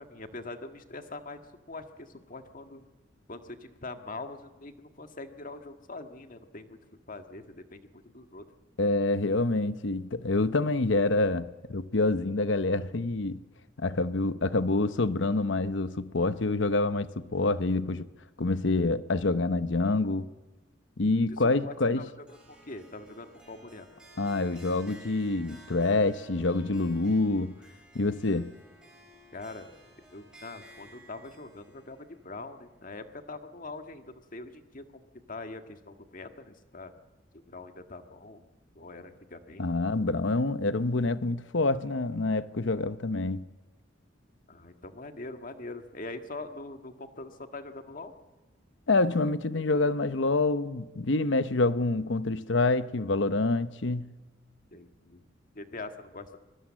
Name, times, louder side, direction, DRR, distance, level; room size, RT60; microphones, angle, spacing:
voice 1, 0.0-1.4 1.7-2.8 3.3-6.8 7.1-8.5 21.3-23.9 29.3-29.7 30.1-36.9 37.3-38.5 38.7-39.6 44.5-48.1 49.5-49.9 54.7-55.3 55.5-56.4, left 2 dB, 45° left, 1.7 m, -43 dB
voice 2, 8.8-13.4 13.8-18.1 18.4-20.3 21.0-22.0 24.2-27.5 27.9-28.5 39.6-43.5 48.9-54.1, left 2 dB, 65° left, 0.9 m, -27 dB
Harp, 22.3-33.5, equal, 5° right, 6.0 m, -55 dB
25.0 x 21.5 x 7.6 m
head